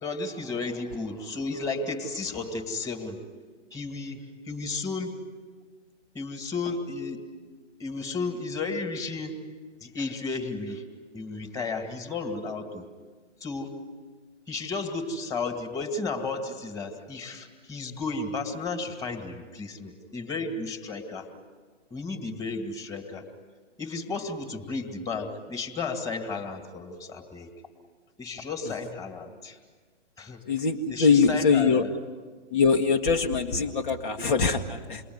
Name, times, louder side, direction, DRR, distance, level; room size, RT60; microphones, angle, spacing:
voice 1, 0.0-3.2 3.7-5.2 6.1-7.2 7.8-9.4 9.8-10.8 11.1-12.9 13.4-13.7 14.5-21.3 21.9-23.2 23.8-27.5 28.2-29.6 30.2-30.4 30.9-31.9, left 3 dB, 10° left, 5 dB, 2.4 m, -33 dB
voice 2, 30.5-31.8 32.5-35.0, left 5 dB, 45° left, 2 dB, 1.7 m, -23 dB
28.5 x 21.5 x 9.7 m, 1.5 s
hypercardioid pair, 135°, 36 cm